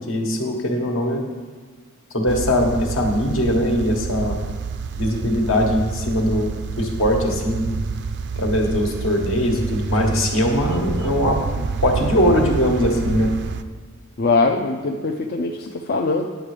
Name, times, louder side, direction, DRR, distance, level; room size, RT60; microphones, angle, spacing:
voice 1, 0.1-1.2 2.1-4.4 5.0-6.5 6.8-7.7 8.4-13.3, equal, 70° left, 1 dB, 1.5 m, -21 dB
sound 1, 2.3-13.6, right 4 dB, 55° right, 0.4 m, -28 dB
voice 2, 14.2-16.2, left 3 dB, 45° left, 1 dB, 0.5 m, -21 dB
10.5 x 6.7 x 5.0 m, 1.5 s
head